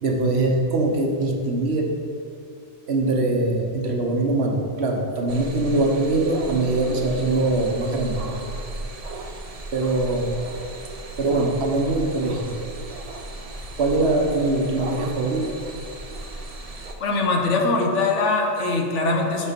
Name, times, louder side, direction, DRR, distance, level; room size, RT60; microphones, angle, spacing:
voice 1, 0.0-1.9 2.9-8.4 9.7-10.4 11.2-12.6 13.8-15.6, right 2 dB, 65° right, 1 dB, 1.2 m, -22 dB
sound 1, 5.3-16.9, right 2 dB, 40° right, 0.6 m, -35 dB
voice 2, 17.0-19.5, left 3 dB, 85° left, 1 dB, 1.3 m, -22 dB
6.7 x 6.6 x 5.2 m, 2.5 s
omnidirectional pair, 1.2 m